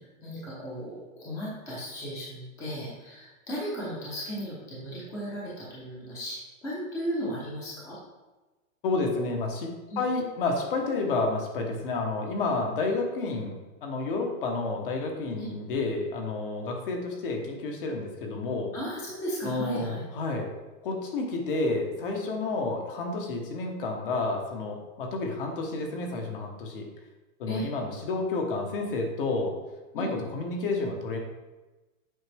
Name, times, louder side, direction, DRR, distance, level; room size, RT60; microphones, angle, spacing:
voice 1, 0.2-8.0 9.9-10.0 15.3-15.5 18.7-20.0 27.4-27.7 30.0-30.2, equal, 5° left, -7 dB, 0.7 m, -35 dB
voice 2, 8.8-18.7 19.4-20.5 20.8-26.9 27.4-29.5 29.9-31.2, left 3 dB, 40° left, 2 dB, 1.2 m, -30 dB
7.9 x 5.1 x 3.4 m, 1.1 s
supercardioid pair, 175°, 42 cm